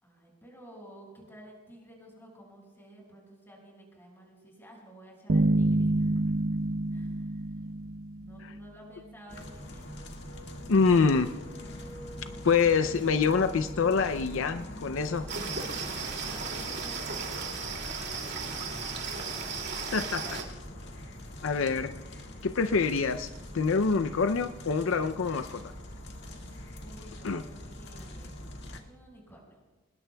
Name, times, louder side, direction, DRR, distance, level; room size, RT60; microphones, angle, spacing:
voice 1, 0.0-6.1 6.9-7.8 8.2-10.0 14.8-19.2 19.6-20.5 26.2-28.5 28.8-29.6, right 1 dB, 10° left, -2 dB, 5.7 m, -53 dB
sound 1, 5.3-8.7, right 2 dB, 85° right, 0.8 m, -27 dB
sound 2, 9.3-28.8, left 1 dB, 55° left, 1.9 m, -43 dB
voice 2, 10.7-11.3 12.4-15.2 19.9-20.4 21.4-21.9 22.4-23.3 23.5-25.6 27.2-27.4 28.7-28.8, left 5 dB, 70° left, 10 dB, 0.5 m, -25 dB
sound 3, 15.3-20.4, right 5 dB, 55° right, 2.5 m, -35 dB
25.0 x 20.5 x 2.3 m, 1.2 s
head